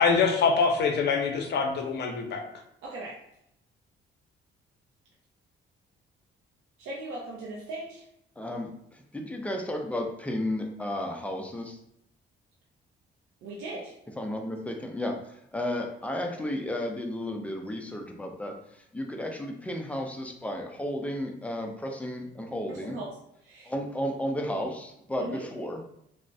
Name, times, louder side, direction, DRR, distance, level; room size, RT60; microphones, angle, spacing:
voice 1, 0.0-2.4, left 5 dB, 60° left, 4 dB, 0.6 m, -24 dB
voice 2, 2.8-3.2 6.8-8.1 13.4-13.9 22.7-23.1 23.4-23.7 25.2-25.4, right 2 dB, 90° right, -4 dB, 0.5 m, -38 dB
voice 3, 8.4-11.8 14.2-23.0 23.6-25.8, left 1 dB, 5° left, 3 dB, 0.4 m, -33 dB
3.1 x 2.1 x 2.5 m, 0.77 s
cardioid pair, 90°, 20 cm